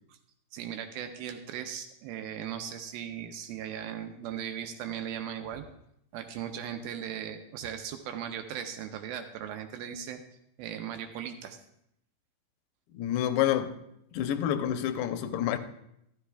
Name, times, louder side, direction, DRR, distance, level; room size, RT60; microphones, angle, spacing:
voice 1, 0.5-5.6 6.1-10.2 10.6-11.6, right 9 dB, 80° right, 2.3 m, -38 dB
voice 2, 12.9-13.8 14.1-15.6, left 11 dB, 85° left, 2.6 m, -28 dB
13.0 x 13.0 x 2.2 m
omnidirectional pair, 4.6 m